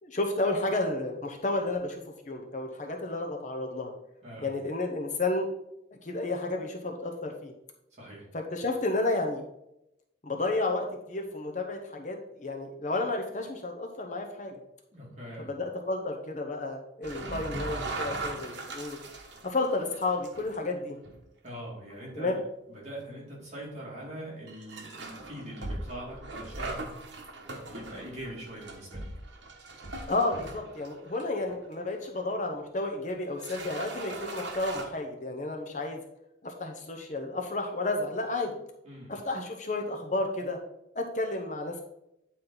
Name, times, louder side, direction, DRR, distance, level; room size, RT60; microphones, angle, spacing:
voice 1, 0.0-3.9 4.4-5.5 6.0-7.5 8.3-9.4 10.2-14.5 15.4-19.0 19.4-21.0 22.2-22.4 30.1-36.0 36.4-38.6 39.1-40.6 40.9-41.8, left 2 dB, 40° left, 2 dB, 0.8 m, -31 dB
voice 2, 7.9-8.3 14.9-15.5 21.4-22.4 22.7-26.9 27.6-29.0 38.8-39.1, right 1 dB, 35° right, -5 dB, 2.7 m, -42 dB
sound 1, 17.0-20.6 21.0-21.2 21.9-22.0 22.9-23.0 24.5-31.7 32.2-32.3 33.1-33.2 33.4-34.8, right 2 dB, 70° right, 1.2 m, -39 dB
9.0 x 4.2 x 3.9 m, 0.82 s
head